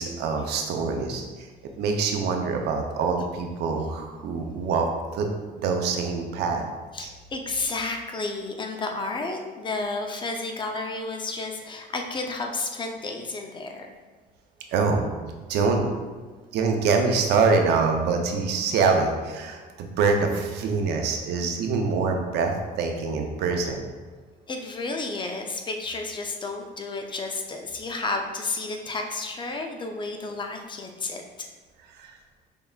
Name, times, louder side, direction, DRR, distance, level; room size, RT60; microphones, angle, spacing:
voice 1, 0.0-1.5 1.7-5.3 5.6-6.6 7.0-7.1 14.7-15.9 16.5-23.9 31.9-32.2, right 4 dB, 80° right, 3 dB, 0.6 m, -25 dB
voice 2, 6.9-13.9 24.5-31.2, left 3 dB, 30° left, 3 dB, 0.6 m, -31 dB
5.3 x 3.4 x 2.4 m, 1.4 s
cardioid pair, 110°, 17 cm